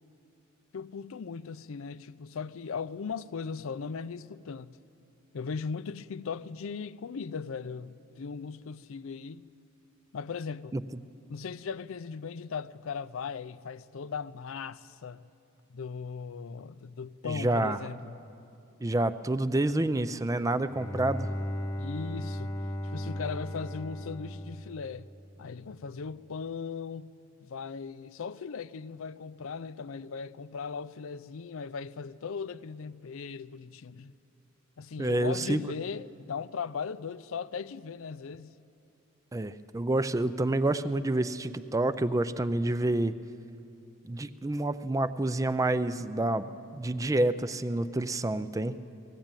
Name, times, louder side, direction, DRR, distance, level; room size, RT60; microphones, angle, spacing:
voice 1, 0.7-4.8 5.3-9.5 10.1-10.8 11.3-15.2 15.7-18.2 21.8-22.6 22.9-25.1 25.4-27.1 27.4-34.1 34.8-38.5, left 5 dB, 70° left, 0.5 m, -38 dB
voice 2, 17.2-17.8 18.8-21.3 35.0-35.6 39.3-43.1 44.1-48.8, right 2 dB, 15° right, 0.4 m, -28 dB
Bowed string instrument, 20.5-25.5, equal, 15° left, 1.0 m, -37 dB
19.0 x 15.5 x 9.0 m
head